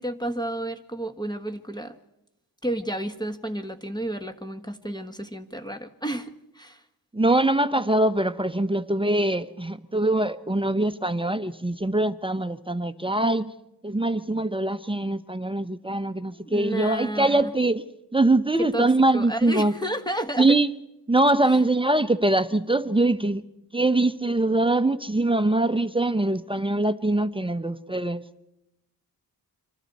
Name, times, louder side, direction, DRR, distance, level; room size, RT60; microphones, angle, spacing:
voice 1, 0.0-2.0 2.6-6.8 16.3-17.5 18.6-20.5, right 1 dB, 10° left, 1.4 m, -31 dB
voice 2, 7.1-13.5 13.8-17.8 18.1-19.7 20.4-20.7 21.1-23.4 23.7-28.3, right 2 dB, 15° right, 0.8 m, -23 dB
27.5 x 26.0 x 4.2 m
cardioid pair, 85°, 40 cm